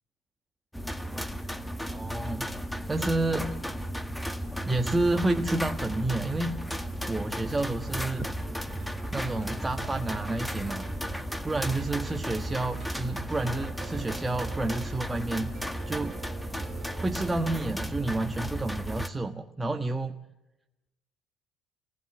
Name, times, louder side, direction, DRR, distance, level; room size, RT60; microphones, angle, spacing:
sound 1, 0.7-19.1, equal, 5° left, 1.9 m, -34 dB
voice 1, 1.9-2.5 2.9-3.6 4.7-6.6 7.1-8.3 9.1-10.9 11.4-15.5 15.9-16.2 17.0-20.2, right 2 dB, 15° right, 6 dB, 1.3 m, -30 dB
sound 2, 8.4-17.8, right 6 dB, 45° right, 2.9 m, -49 dB
28.0 x 18.5 x 9.4 m, 0.99 s
supercardioid pair, 80°, 0 cm